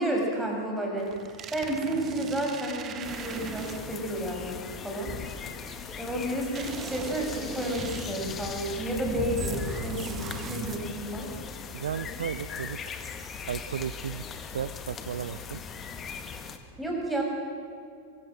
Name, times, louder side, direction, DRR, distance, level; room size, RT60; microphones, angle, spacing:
voice 1, 0.0-4.6 4.8-5.1 6.0-11.3 16.8-17.2, right 1 dB, 5° right, 0 dB, 6.8 m, -31 dB
sound 1, 1.0-4.1 6.6-8.4 9.4-11.1, right 7 dB, 30° right, 1.7 m, -40 dB
sound 2, 3.0-16.6, left 5 dB, 25° left, 2.0 m, -38 dB
voice 2, 11.7-12.8 13.5-15.6, right 8 dB, 65° right, 15 dB, 0.6 m, -34 dB
24.5 x 23.5 x 7.7 m, 2.4 s
figure-of-eight pair, 90°, 0 cm